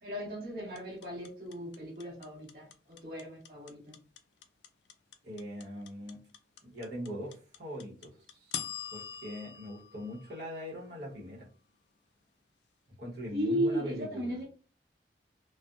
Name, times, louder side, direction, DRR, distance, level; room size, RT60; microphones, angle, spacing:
voice 1, 0.0-4.0 13.3-14.4, equal, 55° right, -4 dB, 1.3 m, -35 dB
sound 1, 0.8-10.9, left 9 dB, 80° left, 0.4 m, -44 dB
voice 2, 5.2-6.2 6.6-8.6 8.9-11.5 13.0-14.4, equal, 80° right, -6 dB, 1.2 m, -41 dB
3.3 x 2.1 x 2.5 m, 0.38 s
head